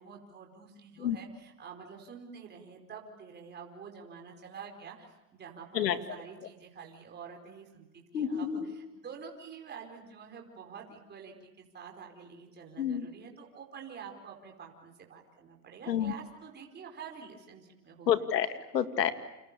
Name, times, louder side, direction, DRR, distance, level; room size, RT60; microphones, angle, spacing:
voice 1, 0.0-18.3, right 6 dB, 20° right, 1 dB, 4.8 m, -48 dB
voice 2, 8.1-8.7 12.8-13.1 15.9-16.1 18.1-19.1, left 9 dB, 85° left, 9 dB, 2.3 m, -29 dB
29.5 x 28.5 x 7.0 m, 0.98 s
hypercardioid pair, 120°, 48 cm